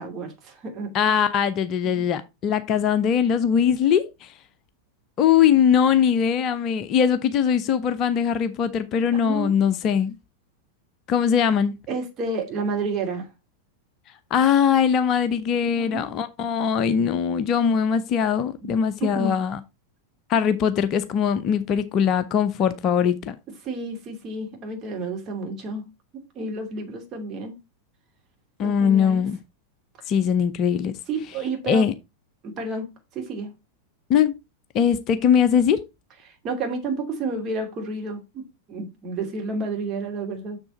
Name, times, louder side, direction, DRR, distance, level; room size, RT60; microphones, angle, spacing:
voice 1, 0.0-1.1 1.9-2.1 9.1-9.5 11.9-13.3 15.5-16.1 18.6-18.8 19.1-19.3 23.6-25.9 26.3-27.5 28.6-29.3 31.1-31.9 32.4-33.5 36.4-40.6, right 3 dB, 30° right, 2.8 m, -31 dB
voice 2, 0.9-4.3 5.2-10.2 11.1-11.8 14.3-19.6 20.3-23.3 28.6-29.4 30.1-30.9 31.7-31.9 34.1-34.3 34.7-35.8, left 8 dB, 35° left, 0.7 m, -21 dB
7.1 x 6.6 x 4.3 m
figure-of-eight pair, 90°, 0 cm